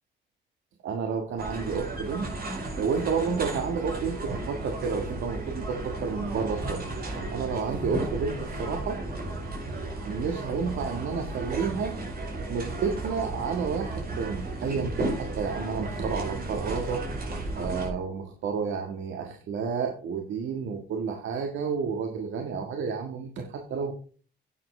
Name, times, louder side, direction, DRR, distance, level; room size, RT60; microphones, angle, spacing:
voice 1, 0.8-2.3 2.8-6.8 7.3-9.0 10.0-11.9 12.5-17.0 17.6-23.9, right 5 dB, 75° right, 3 dB, 1.8 m, -30 dB
sound 1, 1.4-17.9, right 2 dB, 50° right, 5.6 m, -34 dB
11.5 x 9.2 x 3.4 m, 0.40 s
cardioid pair, 90°, 20 cm